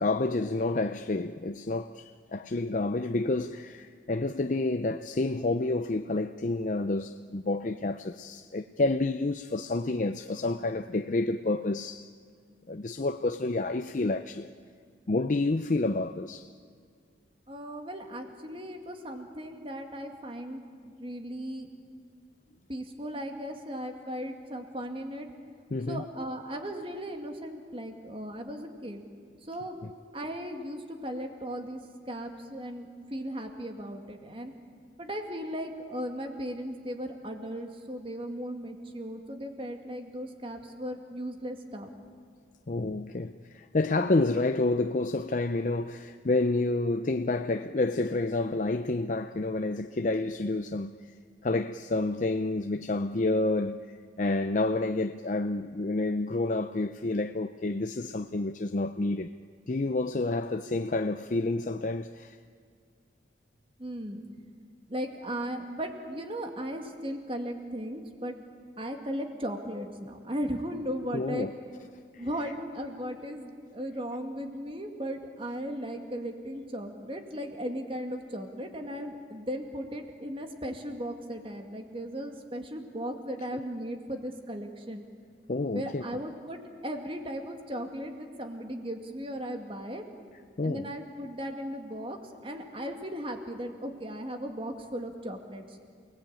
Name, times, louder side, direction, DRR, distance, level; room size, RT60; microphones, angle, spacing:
voice 1, 0.0-12.1 12.7-14.5 15.1-16.5 25.7-26.0 42.7-50.9 51.4-59.3 59.7-62.4 71.1-71.5 72.1-72.3 85.5-86.1 90.6-90.9, left 2 dB, 45° left, 0.5 m, -29 dB
voice 2, 17.5-21.7 22.7-25.3 25.9-29.0 29.4-29.8 30.1-31.8 32.1-34.5 35.0-41.9 63.8-64.2 64.9-68.4 68.8-71.5 72.2-85.0 85.7-90.1 90.6-95.8, equal, 30° right, 2.3 m, -37 dB
28.5 x 19.0 x 8.9 m
head